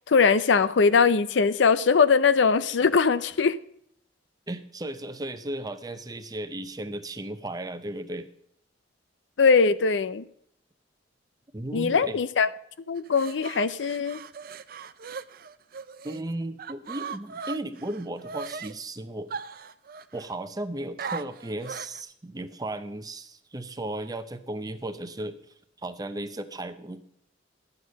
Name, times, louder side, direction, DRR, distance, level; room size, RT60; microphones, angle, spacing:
voice 1, 0.1-3.6 9.4-10.2 11.7-12.5 12.9-14.2, left 5 dB, 85° left, 0.5 m, -21 dB
voice 2, 4.5-8.3 11.5-12.2 16.0-19.3 20.1-25.4 25.8-27.0, right 1 dB, 20° right, 0.7 m, -35 dB
sound 1, 13.0-16.2 16.6-18.7 19.3-20.3 21.0-22.0, right 5 dB, 55° right, 0.5 m, -38 dB
11.5 x 8.1 x 5.3 m
head